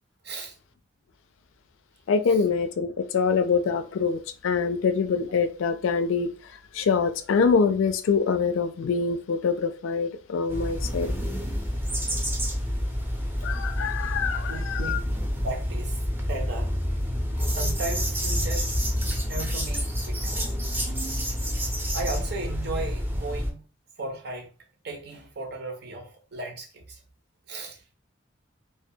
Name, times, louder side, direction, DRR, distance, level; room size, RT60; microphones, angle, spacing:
voice 1, 0.2-0.6 2.3-2.4 14.5-15.0 15.4-16.0 16.3-16.8 17.5-18.7 19.3-20.3 21.6-23.6 24.0-24.5 24.8-27.0 27.5-27.8, right 2 dB, 55° right, 0.6 m, -36 dB
voice 2, 2.1-6.3 6.7-11.1 13.4-15.0, left 5 dB, 85° left, 0.4 m, -25 dB
sound 1, 10.5-23.5, equal, 10° right, 0.5 m, -28 dB
2.2 x 2.2 x 2.7 m
head